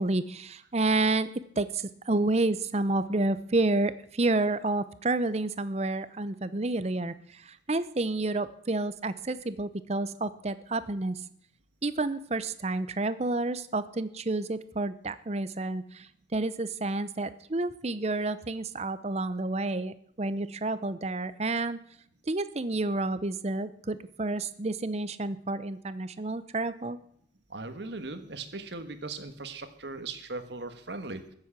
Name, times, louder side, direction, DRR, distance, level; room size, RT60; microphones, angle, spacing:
voice 1, 0.0-7.1 7.5-11.2 11.8-16.1 16.3-21.9 22.3-27.0, right 2 dB, 35° right, 14 dB, 0.7 m, -30 dB
voice 2, 27.5-31.2, right 3 dB, 65° right, 9 dB, 1.5 m, -38 dB
14.5 x 7.7 x 8.7 m, 0.66 s
head